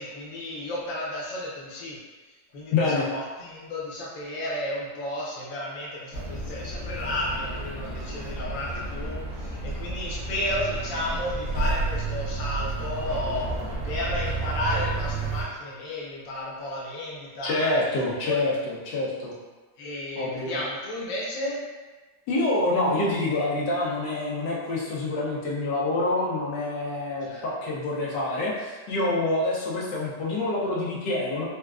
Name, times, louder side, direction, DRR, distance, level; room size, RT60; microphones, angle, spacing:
voice 1, 0.0-2.0 2.5-18.0 18.2-18.5 19.8-21.6 27.2-27.5, left 1 dB, 65° left, -5 dB, 1.2 m, -33 dB
voice 2, 2.7-3.1 17.4-19.3 20.2-20.6 22.3-31.4, left 2 dB, 90° left, -5 dB, 1.3 m, -26 dB
sound 1, 6.1-15.4, right 3 dB, 60° right, 1.1 m, -31 dB
4.2 x 2.2 x 2.3 m, 1.3 s
omnidirectional pair, 1.8 m